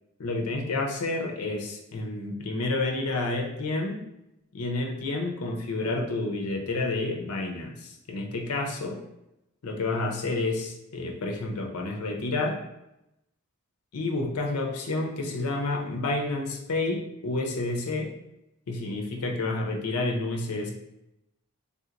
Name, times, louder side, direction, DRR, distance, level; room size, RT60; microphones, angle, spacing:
voice 1, 0.2-4.0 4.5-9.0 9.6-12.6 13.9-18.1 18.7-20.7, left 2 dB, 85° left, 2 dB, 0.6 m, -29 dB
3.6 x 2.8 x 2.5 m, 0.87 s
head